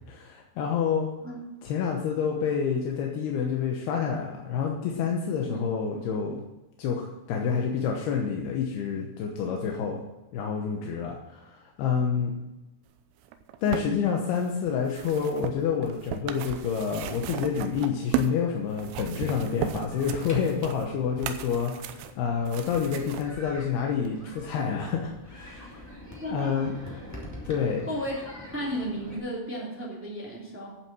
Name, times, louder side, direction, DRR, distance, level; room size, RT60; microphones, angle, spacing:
voice 1, 0.1-1.1 1.6-6.4 6.8-10.0 10.3-12.3 13.6-25.8 26.3-26.7 27.5-27.9, left 6 dB, 75° left, 1 dB, 2.5 m, -28 dB
sound 1, 13.2-18.4 18.7-23.3 24.1-24.2, right 9 dB, 80° right, 3.2 m, -35 dB
sound 2, 19.8-29.2, left 1 dB, 25° left, 0.3 m, -45 dB
voice 2, 26.1-27.0 27.9-28.2 28.5-30.7, equal, 5° right, -4 dB, 1.0 m, -34 dB
11.5 x 7.6 x 6.2 m, 1.0 s
omnidirectional pair, 5.9 m